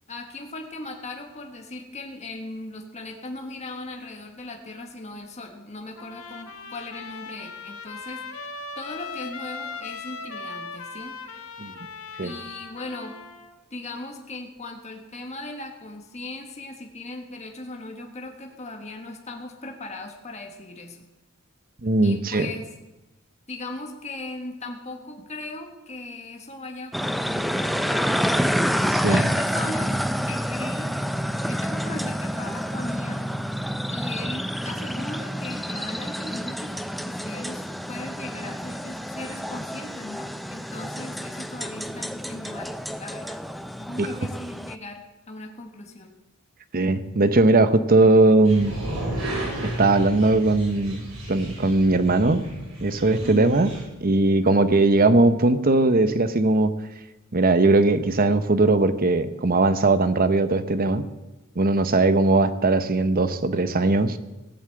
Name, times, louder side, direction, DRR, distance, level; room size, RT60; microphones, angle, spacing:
voice 1, 0.1-11.2 12.2-13.2 13.7-21.0 22.0-22.7 23.5-28.4 28.8-30.0 30.2-31.0 31.5-33.3 33.9-36.8 37.0-43.4 43.8-46.1 53.2-53.6, left 2 dB, 30° left, 2 dB, 1.4 m, -38 dB
Trumpet, 6.0-13.5, left 4 dB, 70° left, 1.3 m, -38 dB
voice 2, 21.8-22.5 28.9-29.3 44.0-44.1 46.7-48.8 49.6-52.4 52.8-53.7 54.0-56.7 57.3-61.1 61.6-64.2, right 2 dB, 40° right, 12 dB, 0.8 m, -19 dB
sound 1, 26.9-44.8, equal, ahead, 0.4 m, -28 dB
sound 2, 48.4-53.8, right 1 dB, 75° right, 5.9 m, -33 dB
16.5 x 8.0 x 7.7 m, 1.0 s
head